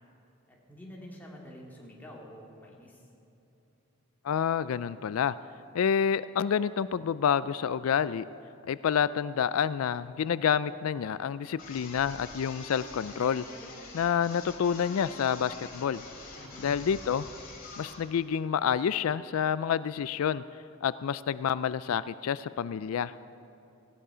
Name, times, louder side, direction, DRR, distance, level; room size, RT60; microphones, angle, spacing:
voice 1, 0.5-3.0 16.3-16.7, equal, 10° left, -3 dB, 2.6 m, -48 dB
voice 2, 4.2-5.3 5.7-8.3 8.7-13.4 13.9-16.0 16.6-17.3 17.8-20.4 20.8-23.1, left 7 dB, 85° left, 16 dB, 0.4 m, -28 dB
sound 1, 11.6-18.1, left 3 dB, 45° left, 2.9 m, -45 dB
17.5 x 15.5 x 5.0 m, 2.9 s
head